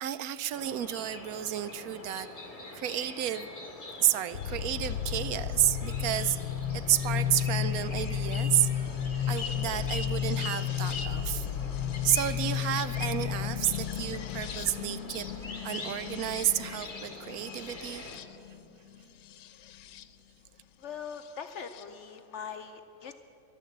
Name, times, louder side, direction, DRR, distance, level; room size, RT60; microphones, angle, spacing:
voice 1, 0.0-2.3 2.7-3.5 4.0-6.4 6.7-8.7 9.3-11.5 12.0-15.3 15.6-18.1, right 12 dB, 70° right, 14 dB, 0.9 m, -31 dB
sound 1, 0.5-18.2, left 2 dB, 25° left, 1.3 m, -43 dB
sound 2, 4.3-20.1 21.2-21.8, left 9 dB, 85° left, 1.2 m, -33 dB
voice 2, 20.8-23.2, left 7 dB, 70° left, 8 dB, 0.7 m, -41 dB
13.0 x 11.5 x 7.9 m, 2.8 s
omnidirectional pair, 1.8 m